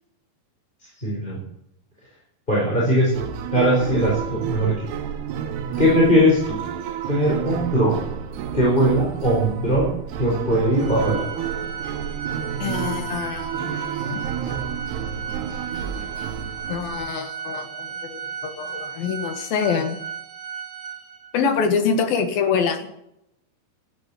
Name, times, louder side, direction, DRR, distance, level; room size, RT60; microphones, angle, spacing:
voice 1, 1.0-1.4 2.5-3.3 3.5-4.8 5.8-6.6 7.1-8.0 8.5-11.5, equal, 10° left, -5 dB, 4.9 m, -20 dB
sound 1, 3.1-17.0, right 8 dB, 80° right, 3.3 m, -30 dB
Organ, 10.8-21.4, right 7 dB, 5° right, 5.0 m, -35 dB
voice 2, 12.6-14.2 16.7-20.0 21.3-22.9, left 6 dB, 65° left, 7 dB, 3.3 m, -25 dB
12.5 x 12.0 x 8.7 m, 0.77 s
omnidirectional pair, 4.7 m